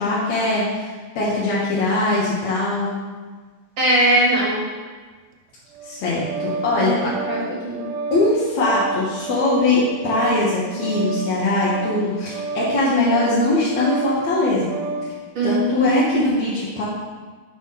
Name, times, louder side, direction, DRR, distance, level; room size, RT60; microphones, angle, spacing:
voice 1, 0.0-3.0 5.8-7.1 8.1-14.7 15.4-16.8, left 2 dB, 60° left, -8 dB, 2.1 m, -21 dB
voice 2, 3.8-4.6 6.8-7.8 15.3-16.3, right 1 dB, 55° right, -8 dB, 2.3 m, -21 dB
Organ, 5.7-15.1, right 3 dB, 80° right, 2.3 m, -30 dB
6.5 x 5.0 x 5.7 m, 1.4 s
omnidirectional pair, 4.1 m